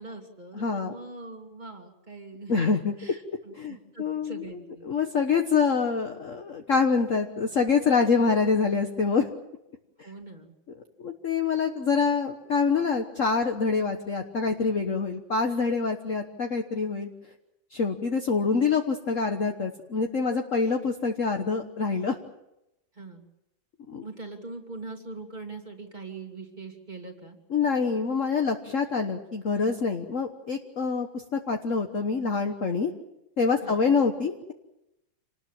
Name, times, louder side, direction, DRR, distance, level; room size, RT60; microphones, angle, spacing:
voice 1, 0.0-4.9 10.0-10.5 22.9-23.2 24.0-27.4 33.6-33.8, right 3 dB, 20° right, 4 dB, 2.8 m, -42 dB
voice 2, 0.6-0.9 2.5-2.9 3.5-4.4 4.8-9.3 11.0-17.1 17.7-22.2 23.9-24.0 27.5-32.9 33.4-34.5, left 5 dB, 45° left, 4 dB, 1.5 m, -26 dB
27.5 x 19.5 x 7.5 m, 0.89 s
omnidirectional pair, 2.1 m